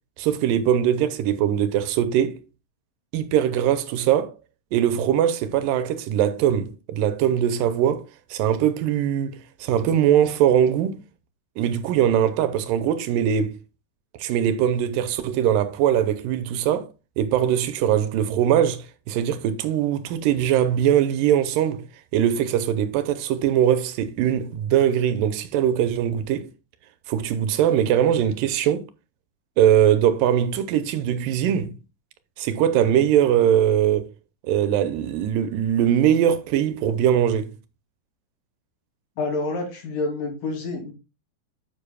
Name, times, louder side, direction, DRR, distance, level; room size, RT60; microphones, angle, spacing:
voice 1, 0.2-2.4 3.1-4.3 4.7-8.1 8.3-11.0 11.6-13.6 14.2-16.9 17.2-21.8 22.1-26.5 27.1-28.8 29.6-31.7 32.4-34.1 34.4-37.5, right 10 dB, 85° right, 2.3 m, -21 dB
voice 2, 39.2-40.9, left 3 dB, 75° left, 4.0 m, -28 dB
9.9 x 7.3 x 2.2 m
omnidirectional pair, 3.9 m